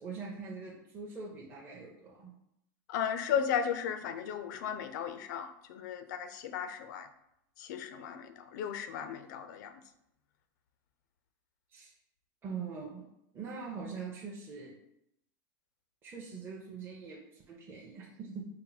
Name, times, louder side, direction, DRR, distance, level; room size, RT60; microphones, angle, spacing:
voice 1, 0.0-2.3 11.7-11.9 12.4-13.1 13.3-14.7 16.0-18.5, right 5 dB, 20° right, -4 dB, 0.6 m, -43 dB
voice 2, 2.9-7.1 7.6-9.8, left 8 dB, 65° left, 9 dB, 0.4 m, -35 dB
4.2 x 2.1 x 4.0 m, 0.79 s
supercardioid pair, 150°, 11 cm